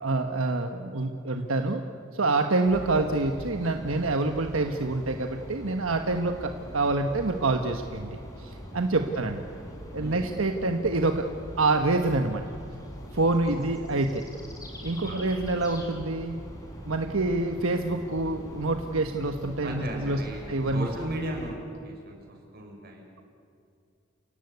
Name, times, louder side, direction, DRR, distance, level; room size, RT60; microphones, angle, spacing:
voice 1, 0.0-1.8 2.1-9.4 9.9-11.3 11.6-12.4 13.1-14.2 14.8-16.4 16.9-20.2 20.5-20.9, right 2 dB, 85° right, 5 dB, 1.3 m, -26 dB
sound 1, 2.7-21.5, equal, 15° left, 5.4 m, -42 dB
voice 2, 10.0-10.3 13.5-13.6 15.0-15.2 19.6-21.6 21.8-23.0, right 1 dB, 50° right, 1 dB, 6.5 m, -37 dB
30.0 x 17.5 x 8.3 m, 2.5 s
head